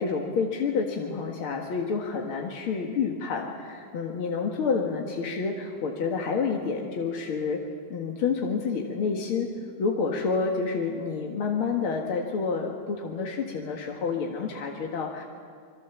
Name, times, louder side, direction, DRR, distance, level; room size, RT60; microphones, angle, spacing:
voice 1, 0.0-7.6 7.9-9.5 9.8-15.2, left 5 dB, 50° left, 1 dB, 1.6 m, -29 dB
27.0 x 22.5 x 7.2 m, 2.2 s
omnidirectional pair, 4.6 m